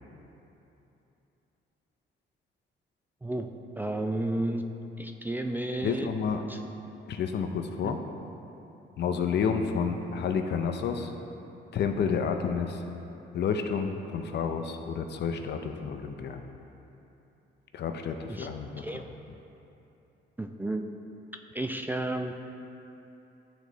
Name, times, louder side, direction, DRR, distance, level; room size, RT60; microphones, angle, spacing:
voice 1, 3.8-4.6 5.0-6.1 6.5-6.6 7.8-8.0 18.3-18.5 18.8-19.1 20.4-20.8 21.5-22.3, right 1 dB, 10° right, 4 dB, 0.3 m, -32 dB
voice 2, 5.8-6.4 7.1-8.0 9.0-11.1 11.7-12.8 13.3-16.4 17.7-19.0, left 6 dB, 60° left, 5 dB, 0.6 m, -30 dB
11.0 x 4.0 x 3.1 m, 2.9 s
cardioid pair, 90°, 20 cm